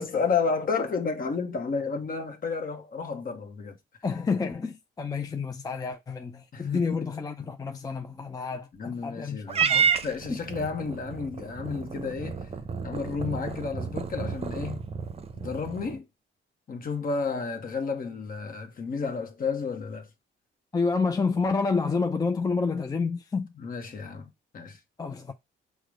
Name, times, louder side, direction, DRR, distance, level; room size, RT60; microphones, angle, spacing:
voice 1, 0.0-3.8 6.5-7.0 8.7-9.7 10.0-12.4 12.8-14.8 15.4-16.0 16.7-20.1 23.6-24.8, left 5 dB, 45° left, 1.1 m, -31 dB
voice 2, 4.0-9.9 10.3-10.4 20.7-23.5 25.0-25.3, left 4 dB, 20° left, 0.4 m, -29 dB
Purr / Meow, 9.5-16.0, right 6 dB, 30° right, 0.6 m, -30 dB
4.7 x 2.2 x 4.8 m
cardioid pair, 90°, 20 cm